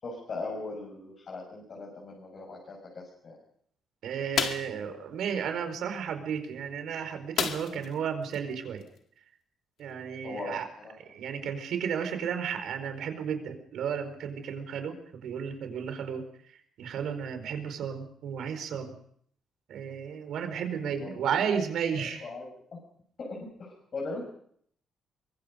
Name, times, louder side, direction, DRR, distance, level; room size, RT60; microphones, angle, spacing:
voice 1, 0.0-3.4 4.6-5.0 10.2-10.6 10.8-10.9 20.8-21.2 22.0-22.8 23.2-24.2, left 3 dB, 40° left, -1 dB, 6.5 m, -39 dB
voice 2, 4.0-8.8 9.8-10.6 11.1-14.9 15.2-16.2 16.5-18.9 19.7-22.2, right 7 dB, 70° right, 7 dB, 4.6 m, -33 dB
sound 1, 4.3-4.8 7.4-7.9 8.3-8.4 8.8-9.0, left 7 dB, 60° left, 2.2 m, -30 dB
24.0 x 23.0 x 5.2 m, 0.64 s
cardioid pair, 150°, 0 cm